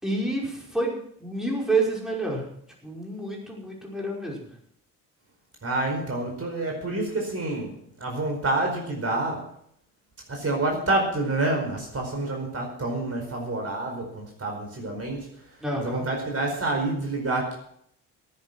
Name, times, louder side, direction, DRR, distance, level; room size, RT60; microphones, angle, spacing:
voice 1, 0.0-2.4 2.8-4.4 15.6-16.1, right 2 dB, ahead, -2 dB, 5.5 m, -28 dB
voice 2, 5.6-9.5 10.3-15.3 15.8-17.6, right 2 dB, 30° right, 1 dB, 4.8 m, -28 dB
18.0 x 8.8 x 6.1 m, 0.68 s
figure-of-eight pair, 45°, 45 cm